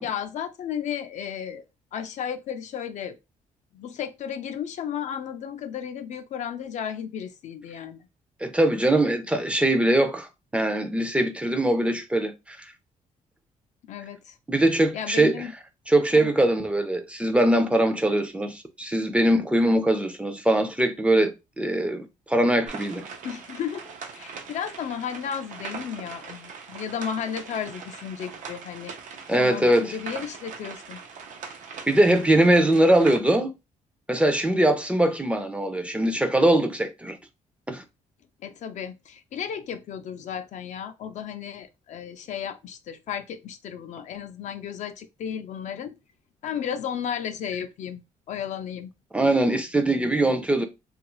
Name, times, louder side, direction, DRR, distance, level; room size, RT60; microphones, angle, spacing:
voice 1, 0.0-1.6 1.9-3.2 3.7-8.1 13.8-14.4 14.9-15.5 16.1-16.3 23.2-28.9 29.4-31.0 38.4-45.9 46.4-48.0 48.3-48.9, left 8 dB, 60° left, 0.4 m, -34 dB
voice 2, 8.4-10.3 10.5-12.7 14.5-15.4 15.9-23.0 29.3-29.9 31.9-33.5 34.1-37.2 37.7-37.8 49.1-50.7, right 1 dB, 10° right, 0.4 m, -22 dB
sound 1, 22.7-33.2, right 5 dB, 70° right, 0.6 m, -41 dB
2.8 x 2.4 x 3.0 m
cardioid pair, 110°, 14 cm